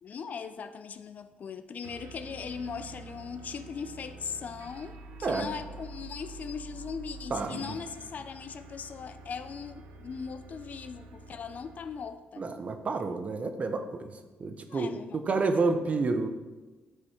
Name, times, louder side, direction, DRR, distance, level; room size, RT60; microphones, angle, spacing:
voice 1, 0.0-12.5 14.7-15.7, left 6 dB, 50° left, 11 dB, 0.5 m, -39 dB
sound 1, 1.8-12.2, right 3 dB, 90° right, 1.0 m, -47 dB
voice 2, 7.3-7.7 12.4-16.3, right 3 dB, 40° right, 8 dB, 0.8 m, -30 dB
9.7 x 5.4 x 4.3 m, 1.2 s
cardioid pair, 100°, 3 cm